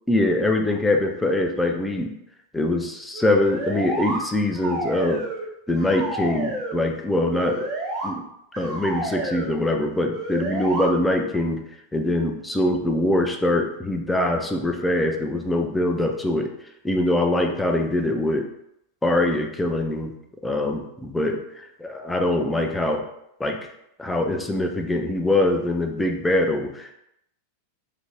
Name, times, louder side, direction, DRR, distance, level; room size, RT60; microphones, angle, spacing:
voice 1, 0.1-2.1 2.5-5.2 5.7-7.7 8.0-8.2 8.6-11.6 11.9-16.5 16.8-18.5 19.0-20.1 20.4-23.0 23.4-23.6 24.0-26.9, left 1 dB, 10° left, 3 dB, 0.3 m, -23 dB
Cartoon Whistle, 3.1-4.2 4.5-5.5 5.8-6.8 7.3-8.1 8.5-9.5 10.1-10.9, right 2 dB, 20° right, 0.8 m, -30 dB
2.4 x 2.0 x 3.2 m, 0.79 s
figure-of-eight pair, 90°, 0 cm